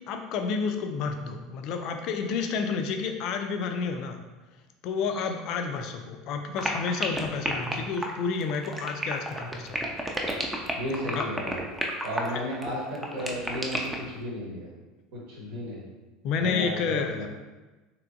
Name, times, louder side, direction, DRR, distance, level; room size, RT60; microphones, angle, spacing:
voice 1, 0.1-4.2 4.8-9.7 11.2-11.3 16.2-17.3, left 5 dB, 50° left, 5 dB, 0.3 m, -30 dB
sound 1, 6.6-14.1, right 1 dB, 10° right, 0.5 m, -31 dB
voice 2, 10.8-11.6 12.0-14.7 15.1-15.8 16.4-17.3, equal, 60° right, -4 dB, 1.1 m, -34 dB
3.3 x 3.0 x 2.5 m, 1.2 s
figure-of-eight pair, 70°, 0 cm